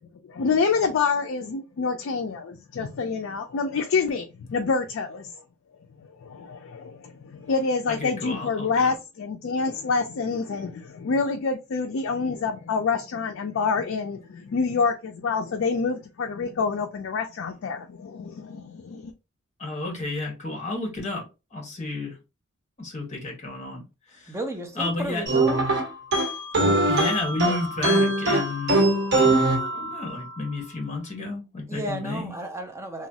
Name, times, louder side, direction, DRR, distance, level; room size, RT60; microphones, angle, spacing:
voice 1, 0.2-5.4 6.0-19.1, left 4 dB, 60° left, 0.4 m, -27 dB
voice 2, 7.9-8.9 19.6-22.2 22.8-23.8 24.1-24.4 24.7-25.2 26.8-28.8 29.2-32.3, left 2 dB, 35° left, 1.2 m, -32 dB
voice 3, 24.3-25.7 31.7-33.1, right 1 dB, 15° right, 0.6 m, -33 dB
sound 1, 25.3-30.3, right 2 dB, 55° right, 1.2 m, -22 dB
3.0 x 2.3 x 2.7 m
head